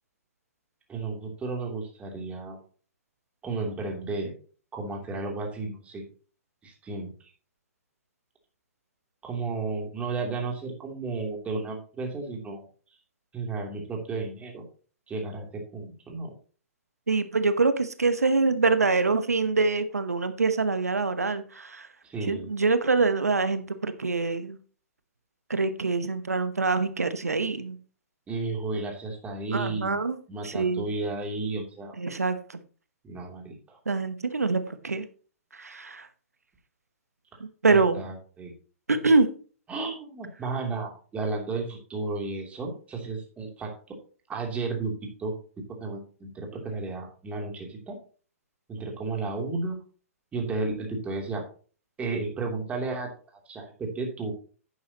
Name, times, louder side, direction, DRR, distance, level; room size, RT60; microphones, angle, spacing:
voice 1, 0.9-2.6 3.4-4.3 4.7-6.0 6.6-7.1 9.2-12.6 13.3-14.6 15.1-16.3 22.0-22.5 28.3-30.0 30.3-32.0 33.0-33.8 37.7-38.5 39.7-43.8 44.3-44.9 45.2-45.4 45.8-48.0 48.7-49.8 50.3-51.4 52.0-53.1 53.5-54.3, right 3 dB, 15° right, 1 dB, 3.0 m, -33 dB
voice 2, 17.1-21.9 22.3-24.6 25.5-27.8 29.5-30.2 30.4-30.9 32.0-32.6 33.9-35.0 35.5-36.1 37.6-38.0 38.9-39.3, right 3 dB, 85° right, 11 dB, 1.0 m, -25 dB
11.0 x 8.9 x 2.9 m, 0.40 s
figure-of-eight pair, 120°, 8 cm